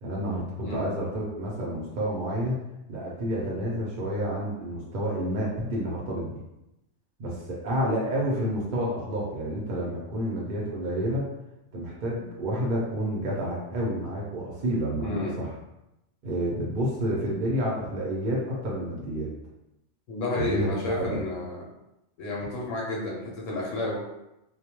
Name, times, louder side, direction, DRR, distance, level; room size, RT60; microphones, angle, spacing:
voice 1, 0.0-0.4 0.7-2.6 2.9-6.4 7.2-11.3 11.7-15.5 16.2-19.3 20.3-21.2, equal, 50° right, -4 dB, 0.8 m, -29 dB
voice 2, 0.6-0.9 15.0-15.4 20.1-21.6 22.2-24.0, left 2 dB, 85° left, -4 dB, 1.0 m, -31 dB
2.3 x 2.2 x 2.9 m, 0.91 s
omnidirectional pair, 1.3 m